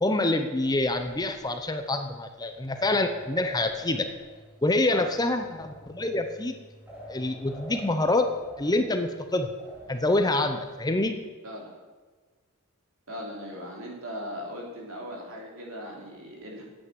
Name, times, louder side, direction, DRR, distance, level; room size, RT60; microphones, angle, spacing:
voice 1, 0.0-4.1 4.6-6.6 7.1-8.3 8.6-9.5 9.9-11.2, left 2 dB, 20° left, 7 dB, 0.7 m, -26 dB
sound 1, 0.6-11.3, equal, 5° right, 3.0 m, -48 dB
voice 2, 13.1-16.6, equal, 65° right, -1 dB, 3.4 m, -38 dB
9.2 x 8.5 x 7.7 m, 1.4 s
head